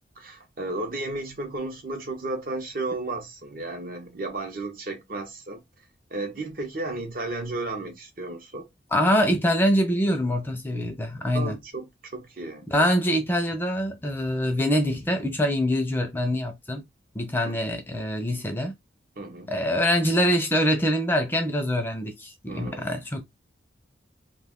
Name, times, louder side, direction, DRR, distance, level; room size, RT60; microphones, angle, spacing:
voice 1, 0.2-5.6 6.1-8.7 11.3-12.7 17.4-17.6 19.2-19.5 22.5-23.0, right 2 dB, 50° right, 0.7 m, -33 dB
voice 2, 8.9-11.6 12.7-16.8 17.2-18.7 19.5-23.2, equal, 10° left, 0.5 m, -24 dB
2.4 x 2.3 x 3.5 m
head